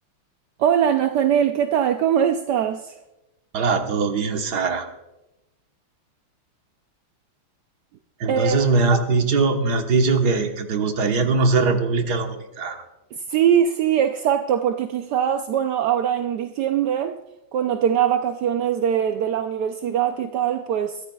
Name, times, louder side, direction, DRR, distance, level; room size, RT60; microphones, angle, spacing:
voice 1, 0.6-2.9 8.3-8.6 13.3-17.2 17.5-21.0, right 9 dB, 70° right, 1.0 m, -21 dB
voice 2, 3.5-4.9 8.2-12.8, right 4 dB, 50° right, 1.6 m, -21 dB
22.5 x 14.5 x 2.3 m
omnidirectional pair, 2.4 m